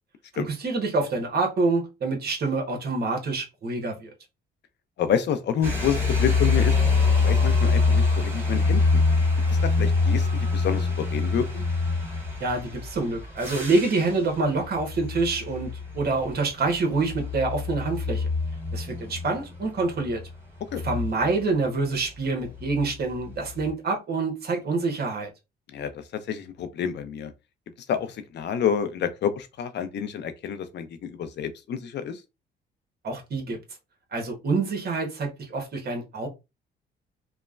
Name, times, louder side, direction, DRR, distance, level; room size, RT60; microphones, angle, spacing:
voice 1, 0.3-4.1 12.4-15.7 15.9-18.3 18.7-20.2 20.8-25.3 33.0-33.6 34.1-36.3, right 3 dB, 55° right, 1.1 m, -26 dB
voice 2, 5.0-6.8 7.2-8.8 9.6-11.6 20.7-20.8 25.7-27.3 27.9-32.2, left 8 dB, 60° left, 0.5 m, -28 dB
sound 1, 5.6-21.6 22.4-23.7, left 4 dB, 10° right, 1.4 m, -25 dB
3.1 x 2.1 x 2.4 m
cardioid pair, 90°, 20 cm